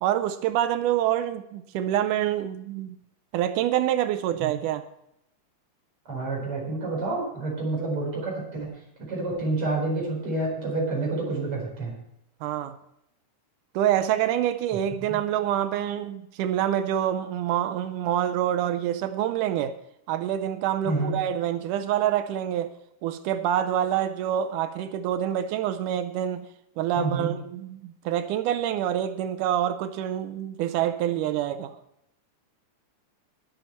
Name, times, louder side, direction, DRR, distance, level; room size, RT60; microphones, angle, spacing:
voice 1, 0.0-3.0 3.3-4.8 12.4-12.8 13.8-19.7 20.1-22.7 23.0-26.5 26.8-31.8, right 11 dB, 85° right, 10 dB, 2.2 m, -26 dB
voice 2, 6.1-12.0 15.1-15.2 20.8-21.2 27.0-27.3, right 2 dB, 45° right, -2 dB, 5.2 m, -29 dB
21.5 x 7.2 x 4.4 m, 0.79 s
omnidirectional pair, 3.6 m